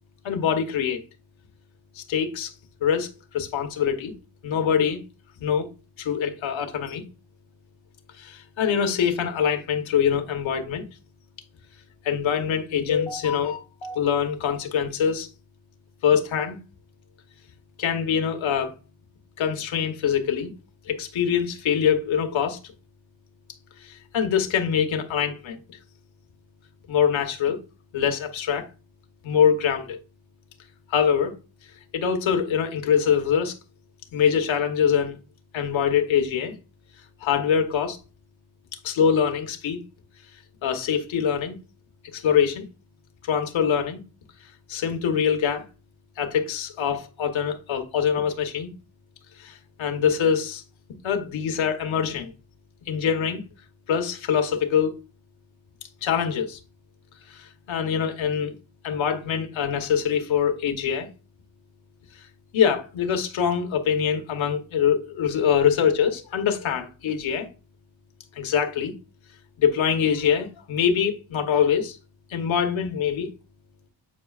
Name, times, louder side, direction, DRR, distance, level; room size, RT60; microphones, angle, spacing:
voice 1, 0.2-1.0 1.9-2.5 2.8-4.1 4.4-5.0 5.4-5.7 6.0-7.1 8.1-10.8 12.0-15.3 16.0-16.6 17.8-18.7 19.4-20.5 20.9-22.6 23.8-25.8 26.9-27.6 27.9-28.7 29.2-30.0 30.9-31.3 31.9-33.6 34.1-35.2 35.5-36.5 37.2-38.0 38.8-39.8 40.6-41.6 42.1-42.7 43.2-44.0 44.7-45.6 46.2-48.7 49.4-50.6 51.0-52.3 52.9-53.4 53.9-55.0 56.0-56.6 57.3-58.5 58.8-61.1 62.1-62.3 62.5-67.5 68.3-68.9 69.6-72.0 72.3-73.3, left 7 dB, 80° left, 1.1 m, -24 dB
8.5 x 4.9 x 2.4 m
cardioid pair, 80°, 46 cm